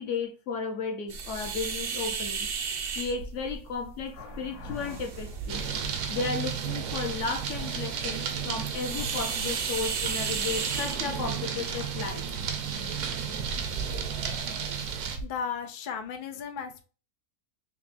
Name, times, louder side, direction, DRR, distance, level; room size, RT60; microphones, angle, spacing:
voice 1, 0.0-2.5 3.0-12.4, left 4 dB, 60° left, 1.0 m, -34 dB
sound 1, 1.1-15.3, right 5 dB, 65° right, 0.5 m, -36 dB
sound 2, 5.5-15.2, right 7 dB, 80° right, 1.2 m, -33 dB
voice 2, 15.2-16.8, left 6 dB, 80° left, 0.4 m, -36 dB
5.7 x 2.2 x 2.5 m
omnidirectional pair, 1.6 m